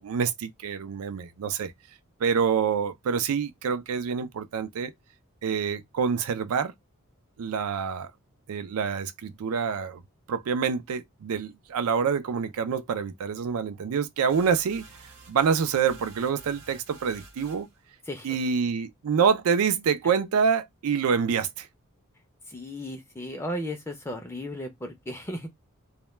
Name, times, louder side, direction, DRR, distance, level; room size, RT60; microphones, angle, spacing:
voice 1, 0.0-1.7 2.2-4.9 5.4-6.7 7.4-8.1 8.5-10.0 10.3-14.8 15.3-17.7 18.2-21.7, right 6 dB, 90° right, 0.4 m, -26 dB
sound 1, 14.3-17.8, right 3 dB, 60° right, 0.8 m, -49 dB
voice 2, 22.5-25.5, left 1 dB, 10° left, 0.4 m, -35 dB
2.1 x 2.1 x 3.0 m
head